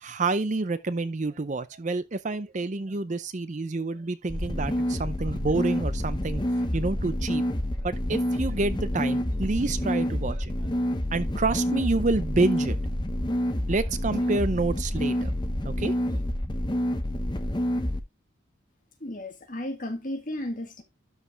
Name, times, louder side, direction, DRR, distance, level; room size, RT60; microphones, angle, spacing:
voice 1, 0.0-6.4 6.7-7.4 7.8-10.7 11.1-12.8 13.7-15.4 15.8-16.2, right 3 dB, 35° right, 0.5 m, -28 dB
sound 1, 4.3-18.0, equal, 20° left, 0.9 m, -28 dB
voice 2, 19.0-20.8, left 1 dB, 40° left, 1.9 m, -34 dB
12.0 x 4.9 x 3.1 m
head